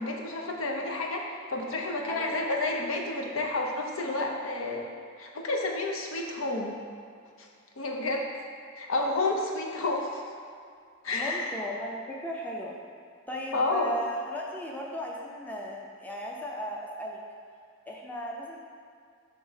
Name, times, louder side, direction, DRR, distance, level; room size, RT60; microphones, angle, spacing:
voice 1, 0.0-4.9 5.2-6.8 7.4-7.5 7.8-8.3 8.8-10.2 11.0-11.5 13.5-13.9, left 2 dB, 75° left, 1 dB, 0.7 m, -30 dB
voice 2, 2.1-2.4 11.1-12.8 13.3-17.2 17.9-18.6, equal, 10° left, -2 dB, 0.5 m, -36 dB
5.3 x 3.4 x 5.6 m, 2.3 s
head